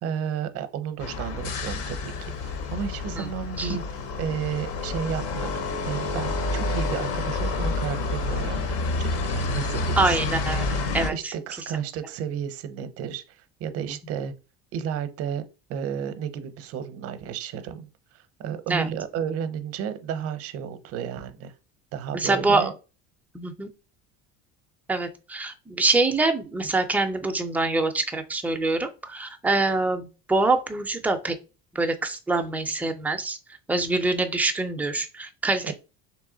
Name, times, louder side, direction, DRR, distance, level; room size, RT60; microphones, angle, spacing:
voice 1, 0.0-3.8 4.1-10.3 11.1-13.2 13.6-14.3 14.7-15.4 15.7-17.9 18.4-21.5 21.9-22.7 35.6-35.7, right 8 dB, 50° right, 0.6 m, -32 dB
sound 1, 1.0-11.1, left 3 dB, 50° left, 0.7 m, -29 dB
voice 2, 10.0-10.6 10.9-11.3 18.7-18.9 22.1-22.7 23.3-23.7 24.9-31.3 31.7-33.4 33.7-35.7, right 3 dB, 5° right, 0.3 m, -25 dB
3.2 x 3.0 x 3.7 m
cardioid pair, 140°, 30 cm